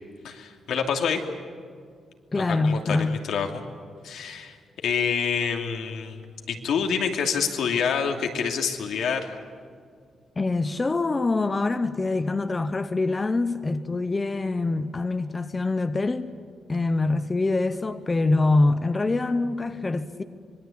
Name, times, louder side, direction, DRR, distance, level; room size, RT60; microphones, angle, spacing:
voice 1, 0.2-1.2 2.5-3.6 4.0-4.6 4.8-6.2 6.5-9.4, left 6 dB, 85° left, 2.7 m, -27 dB
voice 2, 2.3-3.2 10.4-16.3 16.7-20.2, left 3 dB, 20° left, 0.8 m, -24 dB
25.5 x 21.5 x 8.7 m
wide cardioid pair, 160°, 0 cm